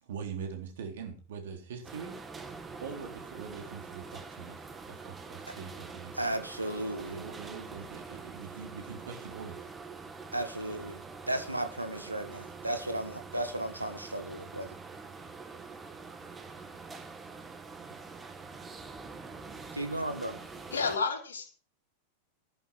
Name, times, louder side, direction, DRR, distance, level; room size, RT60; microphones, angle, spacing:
voice 1, 0.0-2.1 2.8-6.2 7.1-9.7, right 6 dB, 60° right, 3.9 m, -43 dB
sound 1, 1.8-21.0, right 4 dB, 15° right, 2.2 m, -45 dB
voice 2, 6.1-7.3 10.3-14.8 19.7-20.4, right 1 dB, 85° right, 1.9 m, -35 dB
voice 3, 20.7-21.5, left 5 dB, 70° left, 3.6 m, -30 dB
14.5 x 10.5 x 4.7 m
figure-of-eight pair, 90°, 0 cm